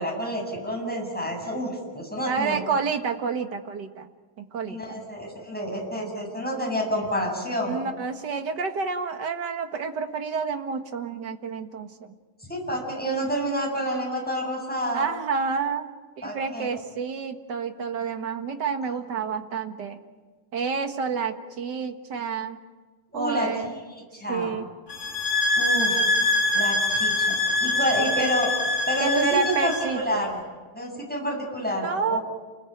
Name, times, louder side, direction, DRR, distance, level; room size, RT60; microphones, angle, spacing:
voice 1, 0.0-2.6 4.6-7.8 12.5-15.0 16.2-16.7 23.1-23.5 23.9-24.6 25.5-26.0 26.5-27.3 27.6-28.5 28.9-30.4 30.7-32.2, equal, 5° left, 0 dB, 7.8 m, -28 dB
voice 2, 2.3-4.1 4.4-5.0 6.0-6.1 7.7-12.1 14.9-15.8 16.2-20.0 20.5-22.6 23.1-23.7 24.3-24.7 28.2-28.3 29.0-30.2 31.8-32.2, right 5 dB, 45° right, 6 dB, 1.8 m, -29 dB
sound 1, 24.9-29.9, left 2 dB, 20° left, 8.4 m, -24 dB
29.5 x 21.5 x 9.3 m, 1.3 s
omnidirectional pair, 3.3 m